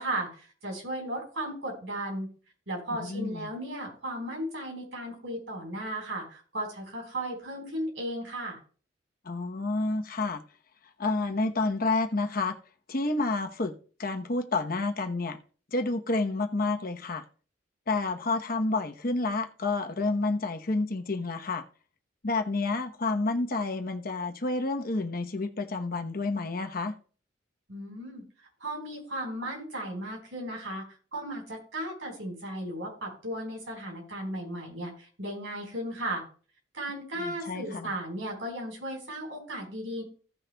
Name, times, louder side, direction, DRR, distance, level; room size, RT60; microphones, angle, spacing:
voice 1, 0.0-2.3 2.7-8.6 27.7-28.2 28.6-30.9 31.1-36.2 36.7-40.0, right 1 dB, 80° right, 4.4 m, -35 dB
voice 2, 3.0-3.5 9.2-10.4 11.0-12.5 12.9-13.7 14.0-15.4 15.7-17.2 17.9-21.6 22.2-26.9 37.2-37.9, left 3 dB, 50° left, 0.9 m, -29 dB
16.0 x 6.4 x 2.3 m
head